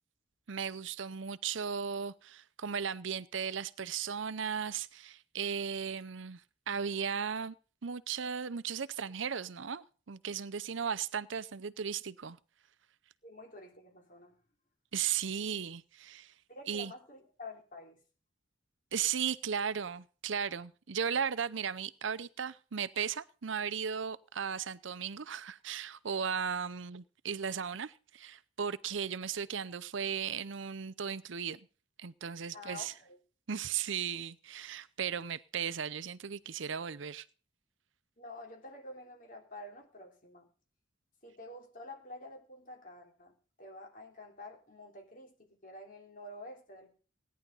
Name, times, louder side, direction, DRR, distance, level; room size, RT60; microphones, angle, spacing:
voice 1, 0.5-6.4 6.7-7.5 7.8-12.4 14.9-16.3 16.7-16.9 18.9-31.6 32.0-32.9 33.5-37.3, right 7 dB, 75° right, 0.6 m, -36 dB
voice 2, 13.2-14.4 16.5-18.0 32.5-33.2 38.2-40.5 41.2-46.9, left 2 dB, 45° left, 3.1 m, -49 dB
17.5 x 10.5 x 5.5 m
head